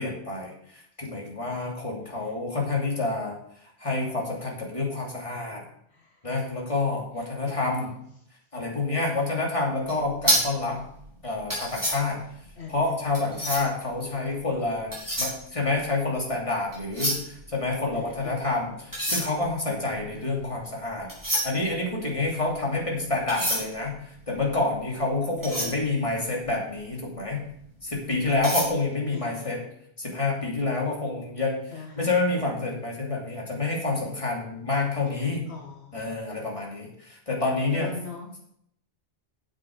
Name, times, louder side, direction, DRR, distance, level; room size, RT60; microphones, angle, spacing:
voice 1, 0.0-3.4 3.8-5.7 6.2-8.0 8.5-10.9 11.2-12.2 12.7-21.1 21.4-27.4 27.8-29.6 30.0-35.5 35.9-37.9, left 3 dB, 30° left, -2 dB, 2.9 m, -28 dB
voice 2, 7.5-7.9 12.6-12.8 13.2-13.5 17.9-18.5 22.9-23.1 25.4-25.7 29.1-29.5 31.7-32.1 33.9-34.1 35.2-36.2 37.7-38.3, left 5 dB, 70° left, 0 dB, 2.0 m, -42 dB
sound 1, 9.8-13.9 14.6-16.3 16.6-18.3 18.8-26.8 27.3-27.4 27.8-28.7, equal, 15° right, 4.3 m, -30 dB
9.5 x 7.3 x 6.6 m, 0.71 s
omnidirectional pair, 1.1 m